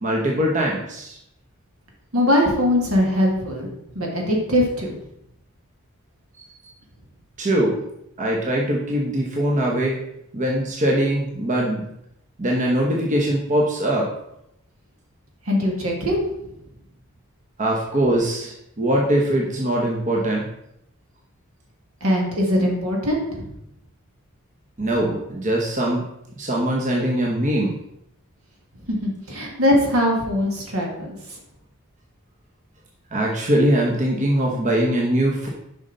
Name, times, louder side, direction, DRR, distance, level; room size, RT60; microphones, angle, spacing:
voice 1, 0.0-1.2 7.4-7.7 8.2-10.0 10.3-11.8 12.4-14.1 17.6-20.5 24.8-26.0 26.4-27.7 33.1-35.5, right 1 dB, 35° right, -2 dB, 1.0 m, -22 dB
voice 2, 2.1-3.7 3.9-5.0 15.5-16.2 22.0-23.5 28.9-31.1, left 1 dB, 70° right, 0 dB, 2.0 m, -21 dB
7.1 x 5.4 x 4.0 m, 0.79 s
head